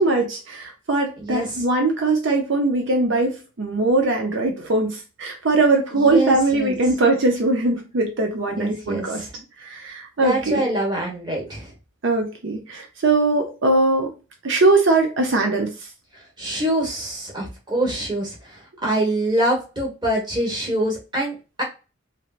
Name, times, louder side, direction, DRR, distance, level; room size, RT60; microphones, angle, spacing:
voice 1, 0.0-9.3 9.6-10.6 12.0-14.1 14.4-15.7, right 2 dB, 65° right, 0.6 m, -21 dB
voice 2, 1.2-1.6 5.9-6.8 8.5-9.4 10.2-11.7 16.1-21.6, right 1 dB, 20° right, 1.2 m, -25 dB
3.1 x 2.7 x 2.4 m
head